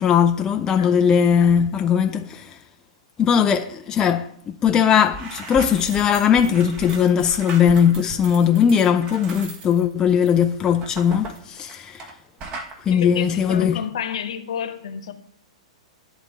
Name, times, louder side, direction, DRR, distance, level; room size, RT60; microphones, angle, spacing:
voice 1, 0.0-2.6 3.2-12.1 12.9-13.8, left 8 dB, 20° left, 0.5 m, -19 dB
sound 1, 4.6-4.8 5.0-12.1 12.4-12.7, right 3 dB, 30° right, 1.5 m, -37 dB
voice 2, 12.9-15.1, left 8 dB, 60° left, 1.1 m, -30 dB
11.5 x 4.0 x 7.7 m
figure-of-eight pair, 105°, 3 cm